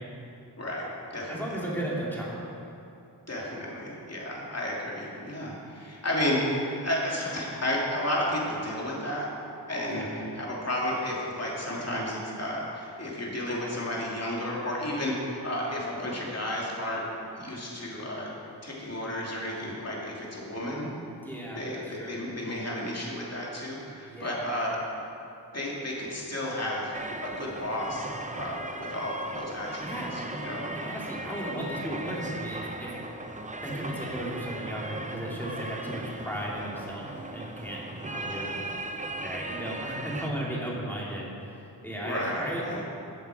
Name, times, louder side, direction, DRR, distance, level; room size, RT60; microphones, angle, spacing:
voice 1, 0.6-1.6 3.3-9.3 9.7-10.1 10.3-17.0 17.3-18.3 18.6-20.9 21.5-24.8 25.5-28.1 28.3-30.7 38.2-38.5 42.0-42.8, left 1 dB, 35° left, -4 dB, 2.8 m, -32 dB
voice 2, 1.3-2.7 9.8-10.1 21.2-22.1 24.0-24.5 29.8-30.1 30.6-32.9 33.6-37.1 37.3-38.6 39.2-42.8, right 1 dB, 5° left, -5 dB, 2.6 m, -35 dB
sound 1, 26.9-40.3, right 2 dB, 20° right, 0.7 m, -37 dB
15.0 x 8.0 x 4.9 m, 2.7 s
wide cardioid pair, 80°, 42 cm